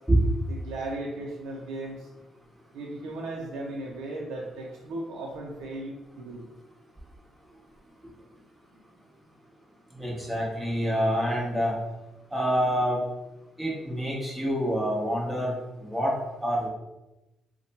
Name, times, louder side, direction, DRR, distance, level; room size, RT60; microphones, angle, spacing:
voice 1, 0.5-2.1 2.7-6.5, right 2 dB, 85° right, -2 dB, 0.5 m, -36 dB
voice 2, 10.0-11.7 12.3-13.0 13.6-15.5 15.8-16.1 16.4-16.7, equal, 5° right, -4 dB, 1.0 m, -26 dB
2.8 x 2.2 x 4.0 m, 0.98 s
cardioid pair, 90°, 0 cm